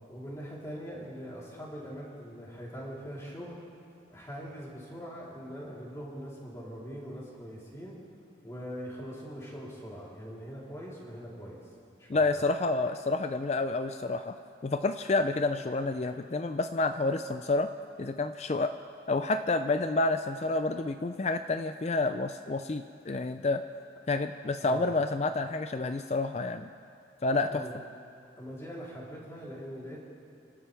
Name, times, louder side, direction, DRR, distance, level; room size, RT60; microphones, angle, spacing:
voice 1, 0.1-3.6 4.1-8.0 8.4-11.6 12.0-12.5 24.6-24.9 27.5-27.7 28.4-30.0, equal, 15° left, -6 dB, 3.6 m, -42 dB
voice 2, 12.1-14.4 14.6-17.7 18.0-18.7 19.1-23.6 24.1-26.7 27.2-27.6, left 3 dB, 35° left, 8 dB, 0.4 m, -29 dB
28.5 x 13.0 x 3.5 m, 2.4 s
head